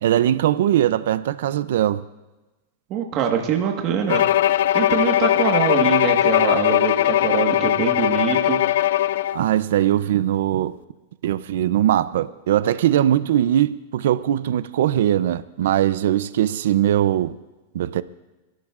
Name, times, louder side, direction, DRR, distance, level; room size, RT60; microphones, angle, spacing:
voice 1, 0.0-2.0 9.3-10.8 11.2-17.4 17.7-18.0, right 11 dB, 75° right, 0.5 m, -20 dB
voice 2, 2.9-4.2 4.7-8.6, right 7 dB, 35° right, 1.5 m, -24 dB
Bowed string instrument, 4.1-9.4, left 12 dB, 75° left, 0.3 m, -19 dB
28.5 x 12.0 x 2.5 m
supercardioid pair, 145°, 0 cm